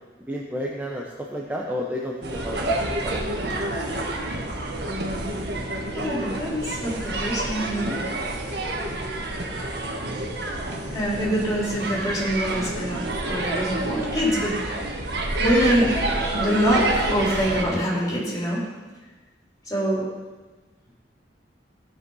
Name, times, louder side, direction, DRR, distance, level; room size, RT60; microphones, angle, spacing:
voice 1, 0.3-3.2 10.7-11.0, equal, 10° right, -2 dB, 0.9 m, -32 dB
sound 1, 2.2-17.6, right 2 dB, 65° right, 1.6 m, -28 dB
voice 2, 6.0-8.0 10.9-14.6 15.4-16.0 16.4-18.6 19.7-20.0, equal, 20° left, -5 dB, 3.5 m, -24 dB
15.5 x 5.3 x 5.6 m, 1.3 s
head